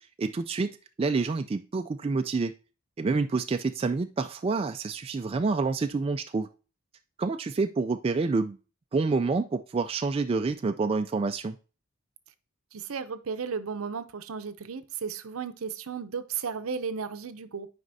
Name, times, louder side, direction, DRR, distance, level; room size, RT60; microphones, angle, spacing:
voice 1, 0.2-0.7 1.0-2.5 3.0-6.5 7.2-8.6 8.9-11.6, right 4 dB, 25° right, 7 dB, 0.3 m, -28 dB
voice 2, 12.7-17.7, right 6 dB, 70° right, 11 dB, 0.6 m, -34 dB
9.5 x 4.9 x 2.7 m, 0.34 s
head